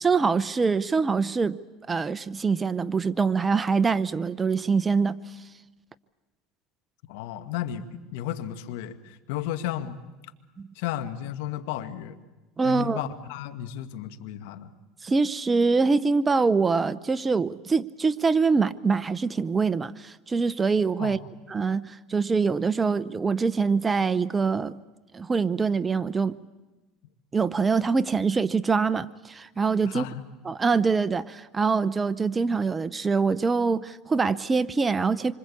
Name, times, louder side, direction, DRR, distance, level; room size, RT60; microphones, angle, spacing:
voice 1, 0.0-1.6 1.9-5.2 10.6-10.7 12.6-13.0 15.0-21.2 21.5-24.8 25.1-26.4 27.3-30.0 30.4-35.3, right 4 dB, 20° right, 16 dB, 0.8 m, -24 dB
voice 2, 7.1-10.0 10.8-12.2 12.6-14.7 21.0-21.2 29.8-30.2, left 11 dB, 75° left, 11 dB, 1.7 m, -33 dB
26.5 x 25.0 x 8.5 m, 1.1 s
supercardioid pair, 105°, 0 cm